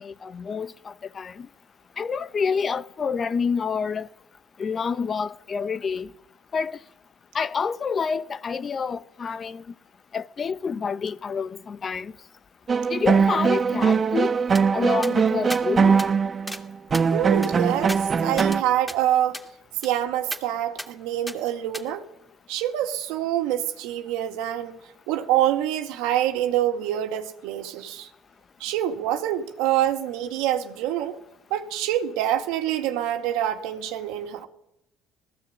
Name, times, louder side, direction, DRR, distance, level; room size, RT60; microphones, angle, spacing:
voice 1, 0.0-1.5 2.0-4.1 4.6-6.1 6.5-6.8 7.3-9.6 10.1-12.1 12.9-14.3 14.7-16.0, left 5 dB, 40° left, 0.9 m, -28 dB
sound 1, 12.7-18.6, right 5 dB, 35° right, 1.1 m, -21 dB
sound 2, 14.6-14.7 15.0-15.1 15.5-15.6 16.0-16.1 16.5-16.6 16.9-18.6 18.9-19.0 19.3-19.5 19.8-19.9 20.3-20.4 20.8-20.9 21.3-21.4 21.7-21.9, equal, 5° left, 2.5 m, -36 dB
voice 2, 17.1-19.4 19.8-22.0 22.5-24.8 25.1-28.1 28.6-31.2 31.5-34.5, right 12 dB, 80° right, 2.0 m, -26 dB
19.0 x 16.0 x 8.7 m
supercardioid pair, 75°, 0 cm